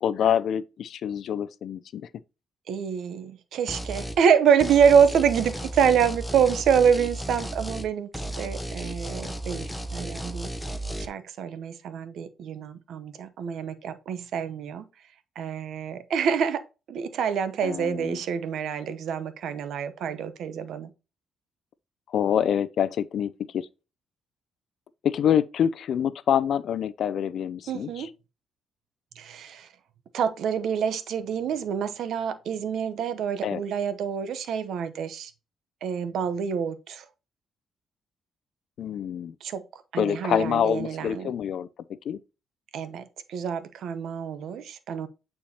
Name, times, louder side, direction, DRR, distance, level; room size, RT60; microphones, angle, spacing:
voice 1, 0.0-2.1 17.6-18.2 22.1-23.7 25.0-28.1 33.4-33.6 38.8-39.3 40.0-41.7 42.0-42.2, left 9 dB, 65° left, 0.4 m, -26 dB
voice 2, 2.7-8.1 8.4-10.5 11.0-16.6 16.9-20.9 27.7-28.1 29.1-29.7 30.1-35.3 35.8-37.1 39.4-41.3 42.7-45.1, right 7 dB, 75° right, 0.8 m, -26 dB
sound 1, 3.7-4.2 4.6-11.1, right 1 dB, 5° left, 0.8 m, -34 dB
8.6 x 4.4 x 2.8 m
cardioid pair, 90°, 0 cm